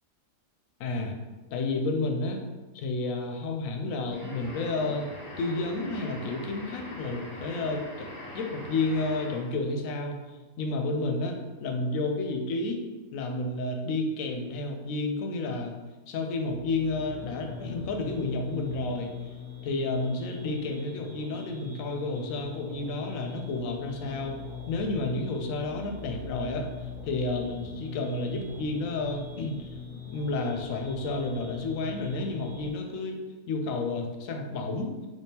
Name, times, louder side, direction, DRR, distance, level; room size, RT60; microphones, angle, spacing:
voice 1, 0.8-1.1 1.5-2.4 2.7-5.1 5.4-12.8 13.1-15.7 16.1-19.1 19.6-24.4 24.7-29.7 30.1-33.2 33.5-34.9, left 2 dB, 80° left, 3 dB, 1.0 m, -31 dB
sound 1, 4.1-9.6, left 1 dB, 50° left, 0.9 m, -42 dB
sound 2, 16.4-32.7, left 5 dB, 65° right, 1.3 m, -42 dB
3.4 x 3.2 x 2.8 m, 1.2 s
omnidirectional pair, 1.4 m